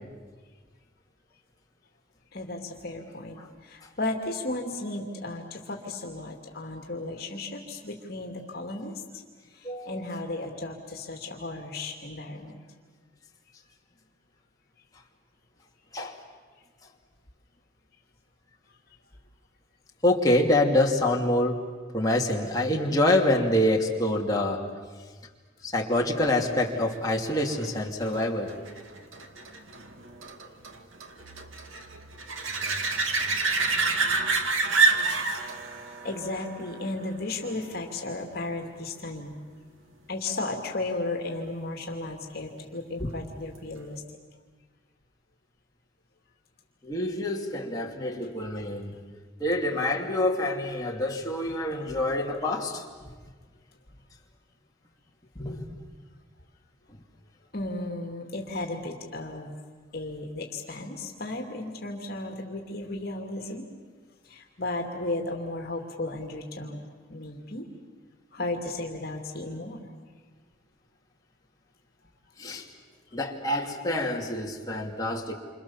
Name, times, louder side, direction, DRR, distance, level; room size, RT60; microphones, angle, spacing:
voice 1, 2.3-9.2 9.5-12.6 35.9-39.4 40.1-44.0 57.5-59.6 59.9-63.7 64.2-66.8 67.1-67.7 68.3-69.9, left 2 dB, 50° left, 2 dB, 2.8 m, -34 dB
voice 2, 20.0-21.6 21.9-24.6 25.6-28.5 43.0-43.1 46.8-49.0 49.4-52.8 55.4-55.7 72.4-72.6 73.1-75.3, left 1 dB, 20° left, -1 dB, 2.8 m, -26 dB
sound 1, 26.6-37.9 43.6-43.7, right 3 dB, 85° right, 2.0 m, -29 dB
29.0 x 27.0 x 7.3 m, 1.5 s
head